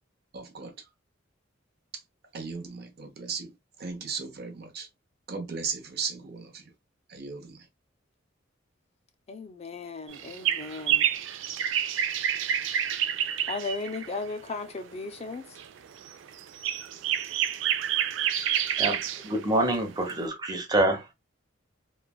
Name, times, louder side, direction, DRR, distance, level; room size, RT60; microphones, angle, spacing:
voice 1, 0.3-0.7 2.3-3.5 3.8-4.9 5.3-6.6 7.1-7.6, right 5 dB, 55° right, 0.7 m, -36 dB
voice 2, 9.3-11.0 13.5-15.4, left 3 dB, 35° left, 0.4 m, -36 dB
sound 1, 10.1-14.2 15.3-15.7 16.0-19.4 19.7-19.8 20.1-20.2, right 9 dB, 80° right, 0.4 m, -28 dB
voice 3, 19.2-21.0, right 1 dB, 20° right, 0.7 m, -26 dB
3.1 x 2.3 x 2.3 m
head